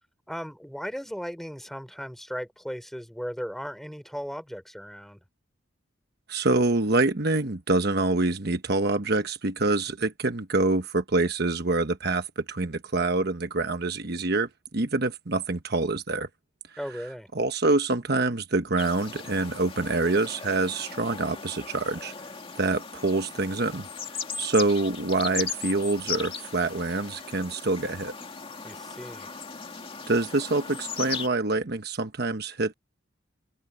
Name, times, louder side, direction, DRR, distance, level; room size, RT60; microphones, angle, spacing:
voice 1, 0.3-5.2 16.8-17.3 28.6-29.3, equal, ahead, 3.5 m, -36 dB
voice 2, 6.3-16.3 17.3-22.1 22.5-23.9 24.4-28.1 30.1-32.7, right 2 dB, 55° right, 1.1 m, -26 dB
sound 1, 18.8-31.3, left 5 dB, 30° left, 2.4 m, -38 dB
head